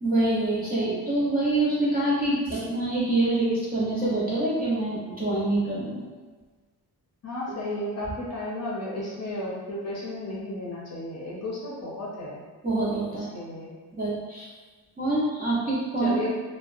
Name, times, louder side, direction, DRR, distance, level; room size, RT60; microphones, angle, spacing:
voice 1, 0.0-6.0 12.6-13.3 13.9-14.5 15.0-16.3, right 2 dB, 25° right, -8 dB, 0.6 m, -25 dB
voice 2, 7.2-12.4 13.1-13.7 16.0-16.3, left 1 dB, 40° left, -6 dB, 0.6 m, -33 dB
2.7 x 2.1 x 2.4 m, 1.4 s
wide cardioid pair, 150°, 40 cm